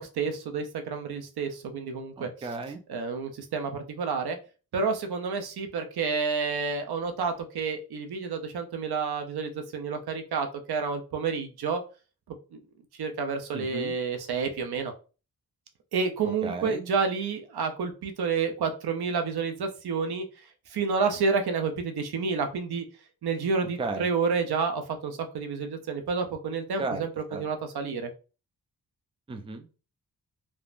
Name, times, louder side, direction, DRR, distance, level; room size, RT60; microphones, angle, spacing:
voice 1, 0.0-2.3 2.9-4.4 4.7-11.8 12.3-12.6 13.0-14.9 15.9-20.3 20.7-22.8 23.2-28.1, right 5 dB, 80° right, 6 dB, 0.6 m, -29 dB
voice 2, 2.2-2.8 13.5-13.9 16.2-16.9 23.8-24.1 26.8-27.4 29.3-29.7, right 3 dB, 15° right, 7 dB, 0.3 m, -35 dB
3.3 x 2.0 x 2.4 m, 0.34 s
wide cardioid pair, 95°, 38 cm